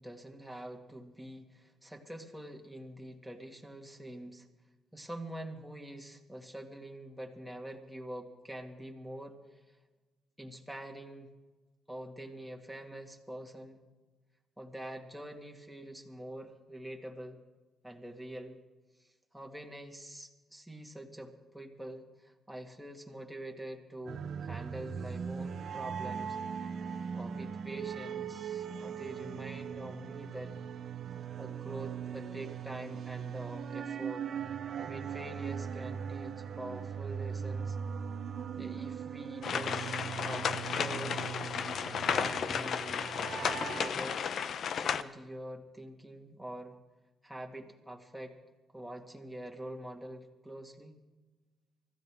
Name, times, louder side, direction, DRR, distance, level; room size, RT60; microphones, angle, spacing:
voice 1, 0.0-4.5 4.9-9.4 10.4-11.3 11.9-13.8 14.6-17.4 17.8-18.6 19.3-26.4 27.1-30.5 31.4-34.3 34.7-37.8 38.6-41.2 41.5-41.6 41.9-42.8 43.3-44.3 44.7-46.7 47.2-48.3 48.7-51.0, right 1 dB, ahead, 1 dB, 2.1 m, -45 dB
sound 1, 24.1-43.9, right 7 dB, 60° right, 0.7 m, -39 dB
sound 2, 39.4-45.0, left 7 dB, 60° left, 0.6 m, -33 dB
24.0 x 14.5 x 3.6 m, 1.2 s
cardioid pair, 90°, 0 cm